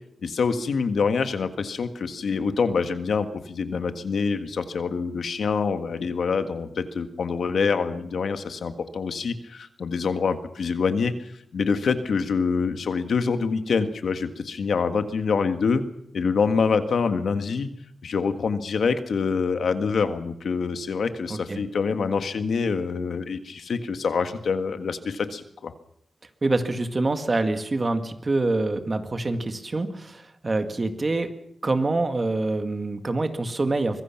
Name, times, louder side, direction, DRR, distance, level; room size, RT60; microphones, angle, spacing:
voice 1, 0.2-15.8 16.1-17.7 18.0-25.7, left 5 dB, 75° left, 8 dB, 1.7 m, -26 dB
voice 2, 21.3-21.6 26.4-31.3 31.6-34.0, right 2 dB, 30° right, 7 dB, 1.8 m, -26 dB
24.0 x 22.0 x 5.9 m, 0.75 s
wide cardioid pair, 145°, 0 cm